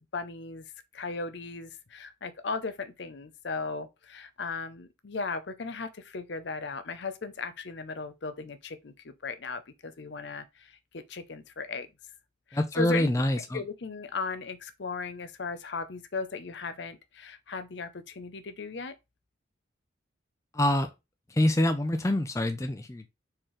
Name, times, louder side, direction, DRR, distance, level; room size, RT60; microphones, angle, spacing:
voice 1, 0.1-0.6 0.9-11.9 12.5-13.1 13.5-18.9, left 4 dB, 60° left, 0.6 m, -37 dB
voice 2, 12.5-13.6 20.5-20.9 21.3-23.1, left 1 dB, 15° left, 0.4 m, -26 dB
4.4 x 3.8 x 3.1 m
head